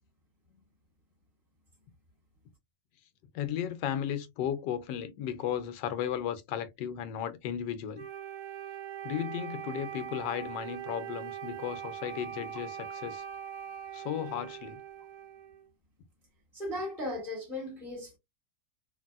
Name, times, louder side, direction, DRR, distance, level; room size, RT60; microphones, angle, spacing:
voice 1, 3.3-8.1 9.0-13.2 13.9-14.8, left 9 dB, 85° left, 1.3 m, -35 dB
Wind instrument woodwind instrument, 8.0-15.7, right 9 dB, 60° right, 0.9 m, -41 dB
voice 2, 16.5-18.2, left 1 dB, ahead, 1.2 m, -36 dB
3.3 x 2.6 x 2.3 m
omnidirectional pair, 1.9 m